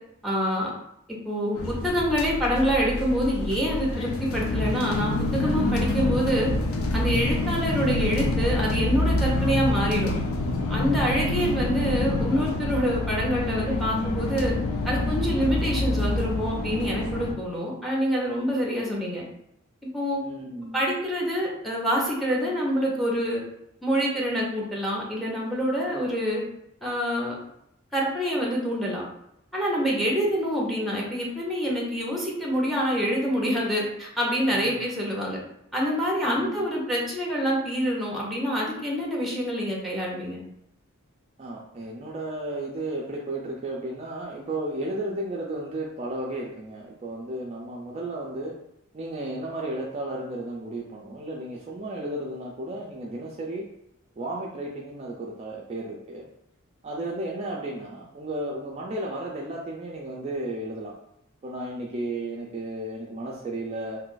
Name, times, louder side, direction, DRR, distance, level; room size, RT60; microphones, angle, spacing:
voice 1, 0.2-0.7 1.2-6.5 6.9-10.1 10.7-14.5 14.8-19.2 19.9-20.2 20.7-23.4 23.8-26.4 26.8-27.3 27.9-29.0 29.5-35.4 35.7-40.4, equal, ahead, -3 dB, 0.8 m, -26 dB
sound 1, 1.5-17.3, left 2 dB, 75° left, 0.5 m, -27 dB
voice 2, 20.2-20.8 29.8-30.0 34.5-34.9 36.2-36.7 41.4-48.5 48.9-53.6 54.2-56.3 56.8-60.9 61.4-64.0, right 1 dB, 30° right, -3 dB, 0.4 m, -34 dB
2.6 x 2.4 x 3.8 m, 0.78 s
head